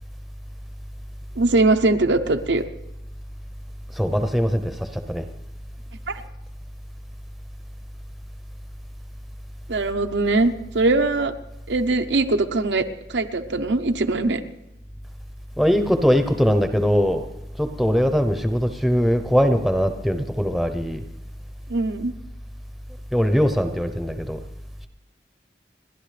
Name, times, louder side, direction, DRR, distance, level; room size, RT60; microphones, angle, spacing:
voice 1, 1.4-2.6 6.1-6.2 9.7-11.3 11.7-12.8 13.1-14.4 21.7-22.1, right 2 dB, 85° right, 7 dB, 0.8 m, -21 dB
voice 2, 3.9-5.3 15.6-17.3 17.6-21.0 23.1-24.4, equal, ahead, 7 dB, 0.7 m, -21 dB
30.0 x 11.0 x 3.3 m, 0.92 s
head